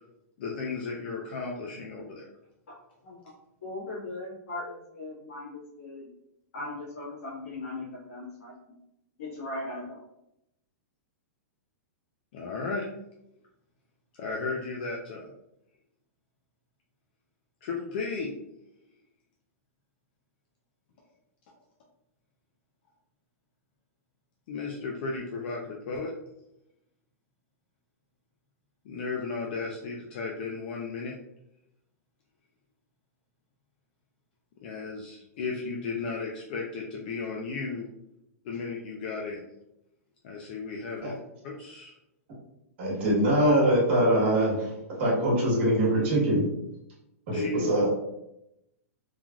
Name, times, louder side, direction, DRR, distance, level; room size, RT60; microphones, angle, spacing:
voice 1, 0.4-2.2 12.3-12.9 14.2-15.3 17.6-18.3 24.5-26.1 28.9-31.1 34.6-37.9 38.4-39.4 40.2-41.1 41.4-41.9 47.3-47.6, left 4 dB, 40° left, -1 dB, 0.4 m, -34 dB
voice 2, 3.6-6.1 6.5-8.7 9.2-10.0, left 2 dB, 60° left, -5 dB, 1.4 m, -39 dB
voice 3, 42.8-44.7 45.0-46.5 47.3-48.0, right 1 dB, 50° right, -5 dB, 1.3 m, -23 dB
3.2 x 2.4 x 2.3 m, 0.84 s
supercardioid pair, 170°, 9 cm